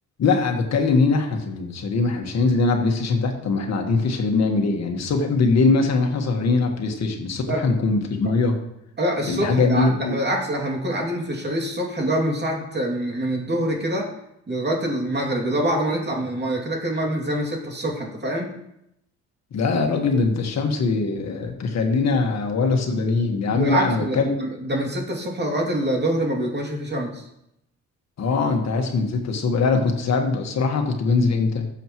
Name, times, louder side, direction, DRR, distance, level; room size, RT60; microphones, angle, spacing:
voice 1, 0.2-8.6 9.2-10.2 19.5-24.5 28.2-31.7, left 4 dB, 60° left, 3 dB, 1.6 m, -22 dB
voice 2, 9.0-14.1 14.5-18.5 23.5-27.3, right 1 dB, 35° right, 0 dB, 2.6 m, -25 dB
13.5 x 7.3 x 3.1 m, 0.81 s
cardioid pair, 90°, 30 cm